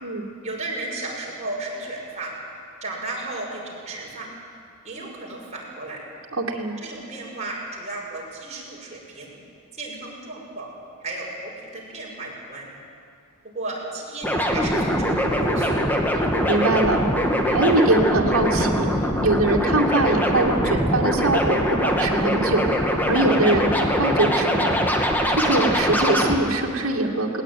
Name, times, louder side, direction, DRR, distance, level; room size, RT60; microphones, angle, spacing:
voice 1, 0.4-2.3 2.8-4.3 4.8-6.0 6.8-9.4 9.7-10.7 11.0-12.7 13.4-15.8, right 2 dB, 35° right, -3 dB, 6.0 m, -34 dB
sound 1, 14.2-26.4, equal, 10° left, 2.1 m, -22 dB
voice 2, 16.2-17.0 17.5-18.9 19.2-27.4, right 2 dB, 85° right, -2 dB, 2.4 m, -22 dB
21.0 x 19.0 x 9.3 m, 2.4 s
head